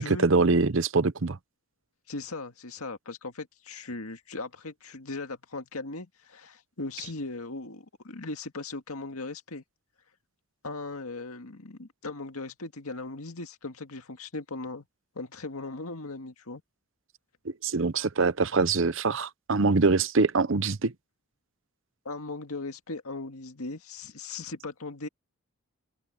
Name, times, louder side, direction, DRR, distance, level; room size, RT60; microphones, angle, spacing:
voice 1, 0.0-1.4 17.6-20.9, right 3 dB, 60° right, 0.8 m, -24 dB
voice 2, 2.1-9.6 10.6-14.9 15.2-16.6 22.1-25.1, left 3 dB, 90° left, 2.1 m, -38 dB
open air
head